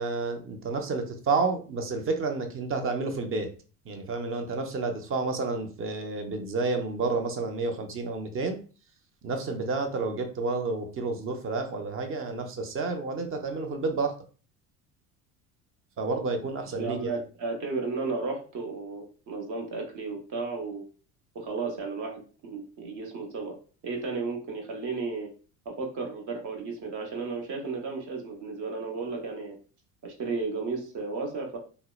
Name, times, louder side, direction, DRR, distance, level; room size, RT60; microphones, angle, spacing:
voice 1, 0.0-3.5 3.9-8.6 9.2-14.2 16.0-17.1, right 3 dB, 35° right, 5 dB, 0.6 m, -30 dB
voice 2, 16.8-20.8 21.3-23.5 23.8-25.3 25.6-29.6 30.0-31.6, right 4 dB, 50° right, 1 dB, 1.0 m, -33 dB
2.7 x 2.1 x 2.3 m, 0.38 s
hypercardioid pair, 80°, 40 cm